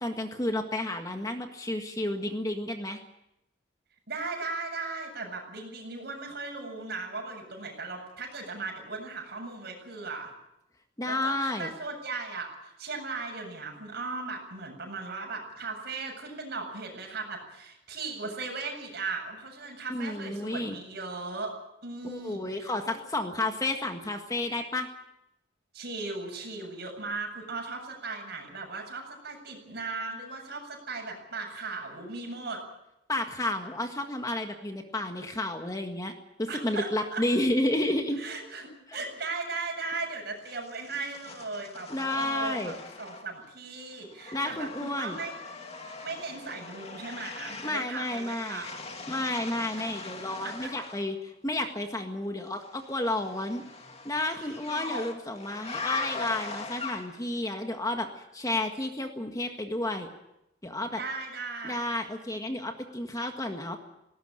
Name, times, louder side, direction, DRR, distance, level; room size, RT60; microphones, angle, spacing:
voice 1, 0.0-3.0 11.0-11.7 19.9-20.8 22.0-24.9 33.1-36.1 36.4-38.2 41.9-42.7 44.3-45.2 47.6-48.7 49.1-53.6 54.0-58.1 58.3-60.1 60.6-61.0 61.6-63.8, left 1 dB, 20° left, 4 dB, 1.8 m, -31 dB
voice 2, 4.1-10.3 11.0-21.5 21.8-22.7 25.7-32.6 36.5-37.2 38.2-45.3 46.0-48.7 49.8-49.9 50.4-50.7 54.4-55.1 61.0-61.8, right 3 dB, 55° right, 2 dB, 7.8 m, -37 dB
sound 1, 40.4-43.5 43.8-51.1 52.6-57.3, left 4 dB, 35° left, 2.5 m, -40 dB
19.5 x 18.0 x 9.2 m, 0.86 s
head